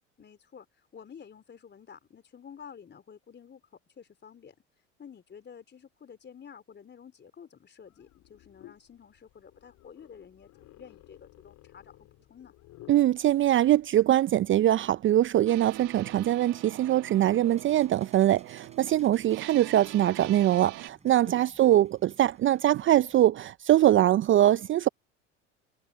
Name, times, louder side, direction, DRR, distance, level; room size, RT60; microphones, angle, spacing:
voice 1, 0.2-3.6 4.0-4.5 5.0-12.5 21.0-21.8, left 7 dB, 30° left, 4.0 m, -50 dB
sound 1, 7.8-16.3, left 16 dB, 50° left, 4.0 m, -56 dB
voice 2, 12.9-24.9, right 13 dB, 35° right, 0.6 m, -23 dB
sound 2, 15.5-20.9, right 21 dB, 55° right, 1.5 m, -45 dB
sound 3, 17.4-23.2, right 4 dB, 20° right, 7.2 m, -58 dB
hypercardioid pair, 75°, 36 cm